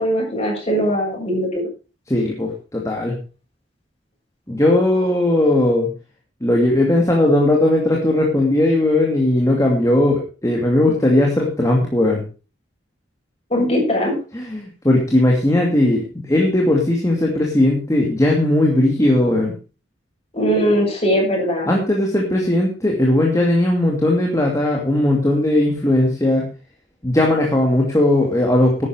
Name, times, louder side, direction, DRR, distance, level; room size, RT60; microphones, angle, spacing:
voice 1, 0.0-1.7 13.5-14.1 20.3-21.7, equal, 35° left, -1 dB, 7.4 m, -20 dB
voice 2, 2.1-3.2 4.5-5.9 6.4-12.2 14.3-19.5 21.7-26.5 27.0-28.9, left 1 dB, 15° left, -1 dB, 2.6 m, -18 dB
12.5 x 9.9 x 5.1 m, 0.34 s
head